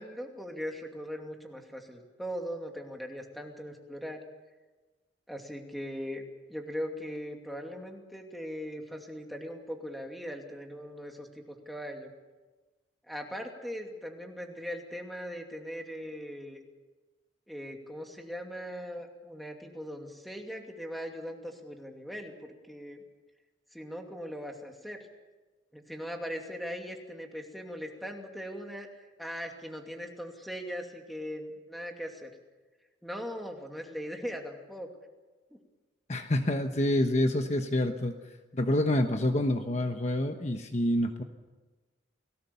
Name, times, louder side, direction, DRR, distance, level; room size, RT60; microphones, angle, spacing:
voice 1, 0.0-4.2 5.3-12.1 13.1-16.6 17.5-22.3 22.6-23.0 23.7-25.0 25.7-28.9 29.2-32.3 33.0-34.9 35.5-35.6, equal, ahead, 2 dB, 2.5 m, -40 dB
voice 2, 36.1-41.2, left 1 dB, 35° left, 6 dB, 1.1 m, -27 dB
29.5 x 19.0 x 7.0 m, 1.3 s
head